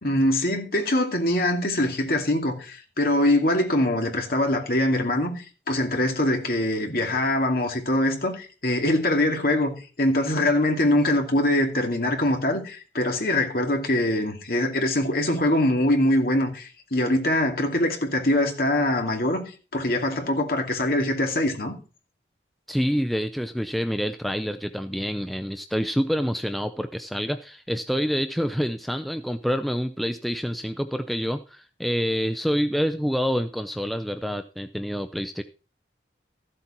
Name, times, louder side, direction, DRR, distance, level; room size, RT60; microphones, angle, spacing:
voice 1, 0.0-19.4 19.7-21.7, left 1 dB, 55° left, 2.5 m, -23 dB
voice 2, 22.7-35.4, equal, ahead, 0.5 m, -27 dB
14.0 x 7.9 x 4.4 m
head